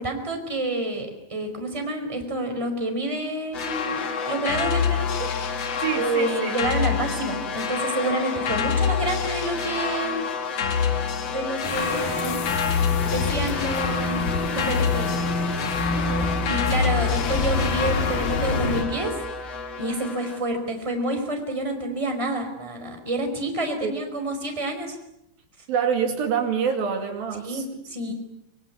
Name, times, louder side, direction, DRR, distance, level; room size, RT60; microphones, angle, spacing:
voice 1, 0.0-10.2 11.2-12.3 13.0-15.5 16.5-19.2 19.5-25.0 27.4-28.1, right 1 dB, 10° right, 4 dB, 4.4 m, -28 dB
sound 1, 3.5-20.4, left 6 dB, 45° left, 2.4 m, -27 dB
voice 2, 5.8-6.5 15.9-16.3 23.8-23.9 25.7-27.6, right 7 dB, 65° right, 5 dB, 4.1 m, -26 dB
sound 2, 11.6-18.8, left 3 dB, 70° left, 4.2 m, -28 dB
sound 3, 15.7-19.9, equal, 10° left, 7.2 m, -35 dB
25.5 x 23.0 x 9.5 m, 0.81 s
omnidirectional pair, 4.5 m